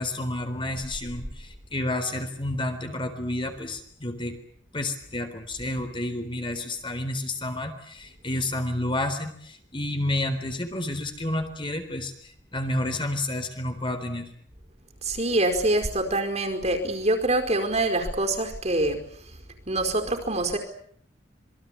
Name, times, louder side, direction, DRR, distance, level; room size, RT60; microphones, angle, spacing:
voice 1, 0.0-4.4 4.7-14.3, left 1 dB, 25° left, 6 dB, 3.9 m, -30 dB
voice 2, 15.0-19.0 19.7-20.6, right 2 dB, 35° right, 5 dB, 4.9 m, -25 dB
27.0 x 22.5 x 8.5 m, 0.64 s
head